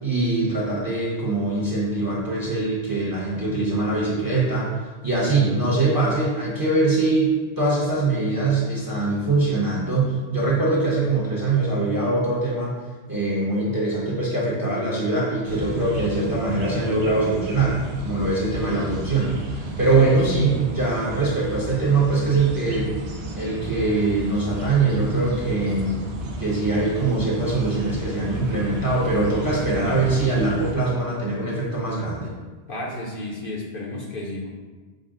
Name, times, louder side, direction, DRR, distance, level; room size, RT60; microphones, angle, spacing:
voice 1, 0.0-4.7 5.0-12.8 13.1-17.8 18.0-22.9 23.4-26.0 26.4-32.3, right 3 dB, 20° right, -6 dB, 0.8 m, -22 dB
sound 1, 15.5-30.7, right 2 dB, 60° right, 0.9 m, -33 dB
voice 2, 32.7-34.5, left 1 dB, 55° left, -3 dB, 0.8 m, -32 dB
6.3 x 2.1 x 3.7 m, 1.3 s
omnidirectional pair, 1.2 m